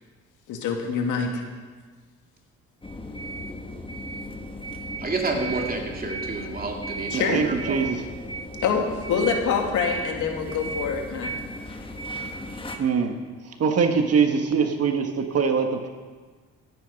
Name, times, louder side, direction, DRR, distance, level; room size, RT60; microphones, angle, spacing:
voice 1, 0.5-1.4 7.1-7.4 8.6-11.3, left 6 dB, 85° left, 3 dB, 1.9 m, -25 dB
sound 1, 2.8-12.8, right 1 dB, 15° left, 1.3 m, -35 dB
voice 2, 5.0-7.8, right 3 dB, 30° right, 1 dB, 2.4 m, -29 dB
voice 3, 7.1-8.0 12.8-13.1 13.4-15.9, right 5 dB, 55° right, 5 dB, 1.4 m, -23 dB
15.0 x 9.3 x 5.3 m, 1.4 s
cardioid pair, 90°, 30 cm